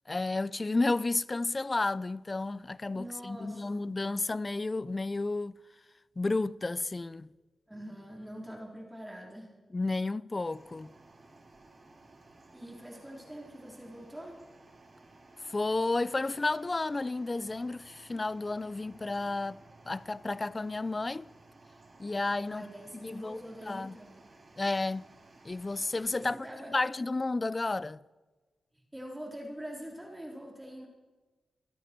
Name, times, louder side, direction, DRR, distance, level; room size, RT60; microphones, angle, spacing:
voice 1, 0.1-5.6 6.2-7.3 9.7-10.9 15.4-21.3 22.0-22.7 23.0-24.0 24.6-25.0 25.4-26.4 26.7-28.0, left 3 dB, 35° left, 0.5 m, -32 dB
voice 2, 2.9-3.9 7.7-9.5 12.5-14.4 22.5-24.2 26.1-26.7 28.7-30.9, equal, 10° right, 3.8 m, -44 dB
sound 1, 10.4-26.3, right 2 dB, 45° right, 4.5 m, -57 dB
25.0 x 9.1 x 4.5 m
supercardioid pair, 45°, 0 cm